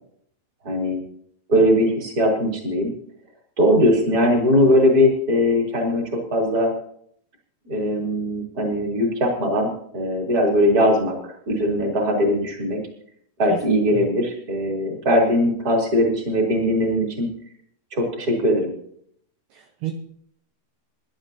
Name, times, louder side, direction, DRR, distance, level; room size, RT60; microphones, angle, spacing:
voice 1, 0.6-1.0 1.5-2.9 3.6-6.7 7.7-12.8 13.4-17.3 17.9-18.7, left 1 dB, 20° right, 0 dB, 3.4 m, -20 dB
voice 2, 13.5-14.1 19.5-19.9, right 13 dB, 70° right, 3 dB, 2.8 m, -31 dB
25.5 x 11.5 x 2.9 m, 0.65 s
omnidirectional pair, 5.9 m